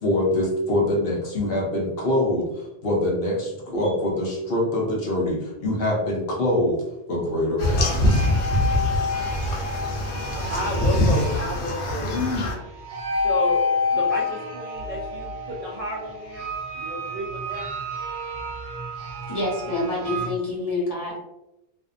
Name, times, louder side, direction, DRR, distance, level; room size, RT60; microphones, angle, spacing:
voice 1, 0.0-6.8 7.1-8.2, left 1 dB, 65° left, -3 dB, 0.9 m, -24 dB
sound 1, 7.6-12.5, left 1 dB, 85° left, 0.9 m, -23 dB
sound 2, 7.6-20.3, left 2 dB, 90° right, 0.9 m, -30 dB
voice 2, 10.4-12.1 13.1-13.6 13.9-16.5 16.7-17.7, left 1 dB, 60° right, -3 dB, 0.3 m, -31 dB
voice 3, 19.3-21.2, left 2 dB, 35° left, -6 dB, 1.0 m, -27 dB
2.6 x 2.1 x 2.4 m, 0.89 s
omnidirectional pair, 1.1 m